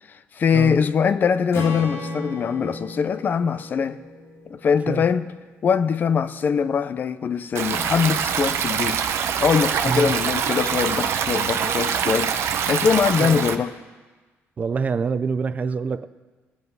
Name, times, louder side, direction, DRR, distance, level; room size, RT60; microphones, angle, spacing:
voice 1, 0.1-4.0 4.5-5.3 5.6-9.0 9.4-13.7, left 6 dB, 40° left, 0.5 m, -22 dB
Strum, 1.5-5.8, left 2 dB, 85° left, 2.9 m, -35 dB
Stream, 7.5-13.5, right 8 dB, 65° right, 0.8 m, -24 dB
voice 2, 14.6-16.1, right 5 dB, 30° right, 0.4 m, -25 dB
19.5 x 8.1 x 5.4 m
cardioid pair, 140°, 5 cm